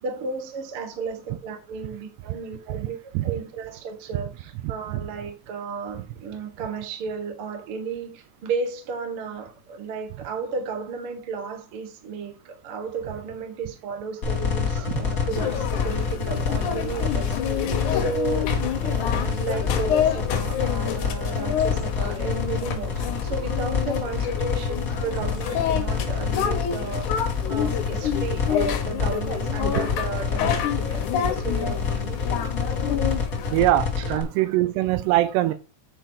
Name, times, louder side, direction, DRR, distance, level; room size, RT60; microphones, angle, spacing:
voice 1, 0.0-18.5 18.8-27.1 27.5-32.2 34.0-34.6 35.5-35.6, right 5 dB, 65° right, 1.3 m, -34 dB
sound 1, 14.2-34.2, left 6 dB, 35° left, 1.3 m, -27 dB
sound 2, 15.3-33.6, left 8 dB, 70° left, 1.9 m, -29 dB
voice 2, 33.5-35.5, right 15 dB, 80° right, 2.6 m, -22 dB
9.0 x 4.7 x 4.9 m
omnidirectional pair, 5.1 m